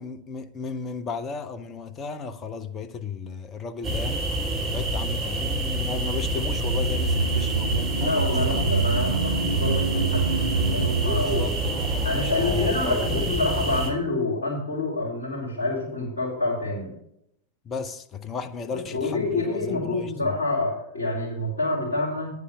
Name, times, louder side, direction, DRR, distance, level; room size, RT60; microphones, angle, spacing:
voice 1, 0.0-4.3 4.7-8.7 11.1-13.3 17.6-20.4, left 5 dB, 25° left, 0.7 m, -34 dB
sound 1, 3.8-13.9, right 1 dB, 20° right, 3.0 m, -27 dB
sound 2, 6.4-12.9 13.1-13.2, right 5 dB, 85° right, 0.4 m, -27 dB
voice 2, 8.0-11.5 12.0-16.9 18.7-22.3, left 2 dB, 70° left, 3.6 m, -27 dB
10.0 x 4.8 x 7.9 m
figure-of-eight pair, 90°, 0 cm